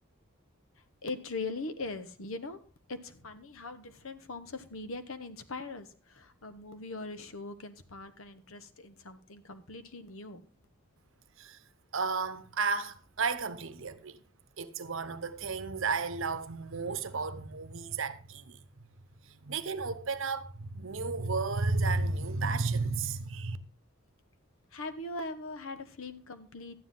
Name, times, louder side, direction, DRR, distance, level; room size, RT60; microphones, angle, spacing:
voice 1, 1.0-2.6 2.9-10.5 24.7-26.8, left 3 dB, 70° left, 1.0 m, -41 dB
voice 2, 11.9-14.2 14.6-18.6 19.2-23.6, right 4 dB, 60° right, 0.9 m, -33 dB
12.0 x 9.6 x 3.8 m
head